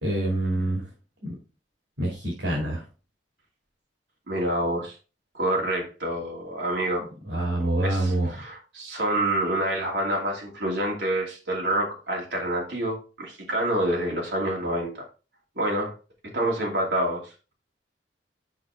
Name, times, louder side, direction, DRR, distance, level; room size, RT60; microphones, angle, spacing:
voice 1, 0.0-0.9 1.2-1.4 2.0-2.8 7.2-8.4, right 1 dB, 90° right, -3 dB, 2.6 m, -26 dB
voice 2, 4.3-5.0 5.3-7.1 7.8-15.1 15.6-15.9 16.3-17.3, right 1 dB, 70° right, -1 dB, 2.4 m, -27 dB
6.3 x 5.8 x 3.6 m, 0.34 s
head